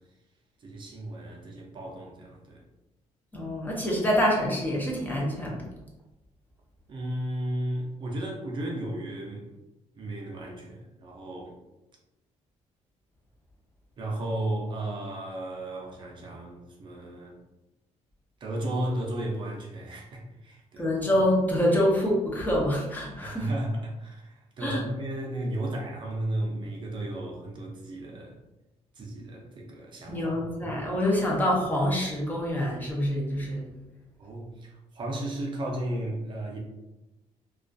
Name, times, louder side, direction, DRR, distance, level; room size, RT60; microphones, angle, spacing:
voice 1, 0.6-2.6 6.9-9.4 9.9-11.5 14.0-17.4 18.4-20.8 23.2-28.3 29.0-30.4 34.2-36.6, right 1 dB, 40° right, -1 dB, 0.4 m, -34 dB
voice 2, 3.3-5.6 20.8-23.5 24.6-24.8 30.1-33.6, equal, 15° left, -3 dB, 0.5 m, -26 dB
2.3 x 2.2 x 2.5 m, 1.0 s
cardioid pair, 155°, 12 cm